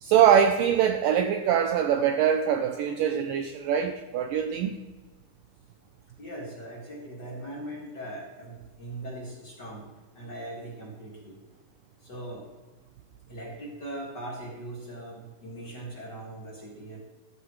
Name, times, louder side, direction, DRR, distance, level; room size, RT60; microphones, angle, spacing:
voice 1, 0.0-4.8, right 9 dB, 85° right, 1.9 m, -23 dB
voice 2, 6.2-9.9 10.1-11.4 12.0-12.5 13.3-17.0, right 1 dB, 35° left, 1.9 m, -40 dB
14.5 x 11.0 x 3.1 m
omnidirectional pair, 4.5 m